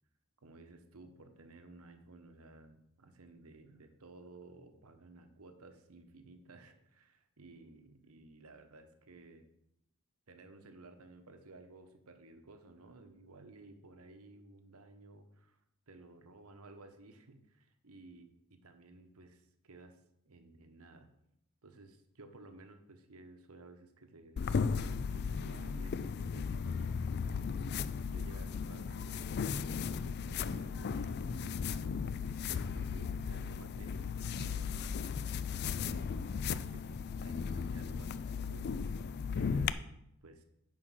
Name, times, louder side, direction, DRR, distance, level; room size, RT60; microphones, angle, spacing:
voice 1, 0.4-9.5 10.3-15.6 15.9-20.0 20.2-21.1 21.6-40.4, right 2 dB, 80° right, 7 dB, 1.0 m, -56 dB
sound 1, 24.4-39.7, left 6 dB, 50° left, 0.3 m, -36 dB
9.9 x 4.5 x 6.3 m, 0.80 s
head